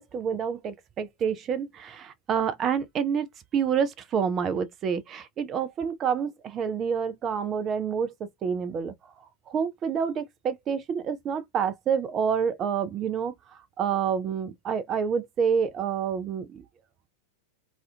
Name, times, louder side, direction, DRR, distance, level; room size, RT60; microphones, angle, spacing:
voice 1, 0.0-3.3 3.5-8.9 9.5-13.3 13.8-16.6, right 7 dB, 30° right, 0.4 m, -28 dB
2.4 x 2.1 x 2.5 m
figure-of-eight pair, 90°, 0 cm